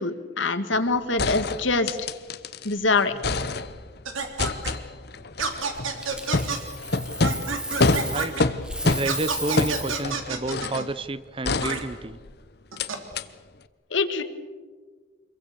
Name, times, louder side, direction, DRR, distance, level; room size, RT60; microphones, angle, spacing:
voice 1, 0.0-1.9 2.6-3.1 13.9-14.2, left 3 dB, 70° left, 9 dB, 1.9 m, -24 dB
sound 1, 0.7-0.8 1.2-2.7 3.0-4.0 4.4-10.9 11.4-12.3 12.8-12.9 13.2-13.3, left 3 dB, 55° left, 1.0 m, -27 dB
sound 2, 4.1-4.7 5.4-6.6 7.2-8.4 9.0-10.9 11.6-11.8 12.7-13.0, right 4 dB, 90° right, 3.4 m, -29 dB
Coin (dropping), 6.0-8.4 8.6-10.1 12.9-13.1, right 1 dB, 5° right, 1.3 m, -35 dB
voice 2, 8.8-12.2, right 2 dB, 25° right, 15 dB, 0.7 m, -30 dB
27.0 x 22.5 x 6.9 m, 1.5 s
head